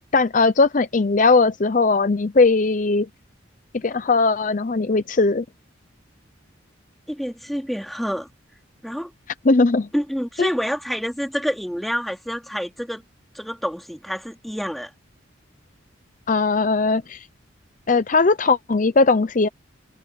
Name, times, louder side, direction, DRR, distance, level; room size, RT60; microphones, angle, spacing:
voice 1, 0.1-3.1 3.7-5.4 9.4-9.9 10.4-10.5 16.3-17.2 17.9-19.5, left 3 dB, 40° left, 0.6 m, -19 dB
voice 2, 7.1-8.3 8.8-9.1 9.9-13.0 13.3-14.9, equal, ahead, 2.5 m, -27 dB
head